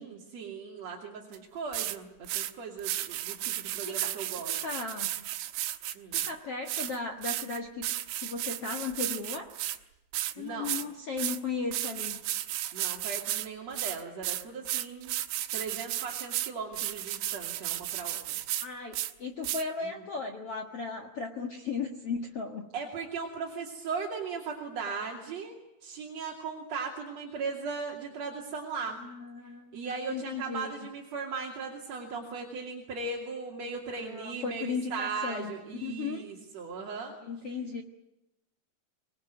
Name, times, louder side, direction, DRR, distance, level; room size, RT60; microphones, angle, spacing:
voice 1, 0.0-4.6 5.9-6.2 10.4-10.8 12.7-15.2 15.5-18.4 19.8-19.9 22.7-29.0 29.7-37.2, right 4 dB, 40° right, 0 dB, 3.1 m, -38 dB
sound 1, 1.3-1.4 1.7-2.0 2.2-2.5 2.8-6.3 6.7-9.8 10.1-10.3 10.6-10.8 11.2-11.4 11.7-13.5 13.7-18.7 18.9-19.1 19.4-19.6, right 14 dB, 85° right, 3.6 m, -33 dB
voice 2, 3.8-4.2 4.5-5.2 6.1-7.9 8.2-9.6 10.4-12.2 18.6-22.6 29.0-30.9 33.9-35.5 35.8-36.3 37.2-37.8, left 4 dB, 75° left, 4 dB, 1.3 m, -36 dB
25.0 x 20.5 x 9.3 m, 0.91 s
omnidirectional pair, 5.4 m